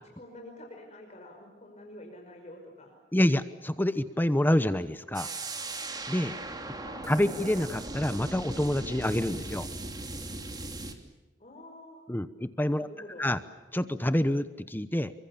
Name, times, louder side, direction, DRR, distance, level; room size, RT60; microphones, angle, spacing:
voice 1, 0.2-3.0 6.7-7.1 11.4-12.0 12.7-13.3, left 1 dB, 40° left, 2 dB, 5.3 m, -48 dB
voice 2, 3.1-5.3 6.1-6.3 7.0-9.7 12.1-12.9 13.2-13.4 13.7-15.1, left 1 dB, 10° left, 12 dB, 0.9 m, -27 dB
sound 1, 5.1-10.9, right 2 dB, 20° right, 2.9 m, -38 dB
29.0 x 24.0 x 7.1 m, 1.2 s
head